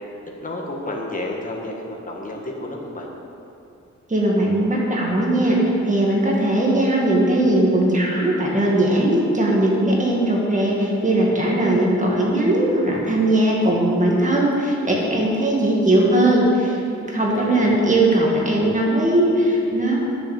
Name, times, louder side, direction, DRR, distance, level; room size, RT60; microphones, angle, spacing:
voice 1, 0.4-3.1 17.3-17.7, left 1 dB, 25° left, -1 dB, 1.5 m, -31 dB
voice 2, 4.1-5.6 5.8-20.0, right 1 dB, 25° right, -3 dB, 2.0 m, -19 dB
10.5 x 7.0 x 7.3 m, 2.7 s
wide cardioid pair, 120°, 29 cm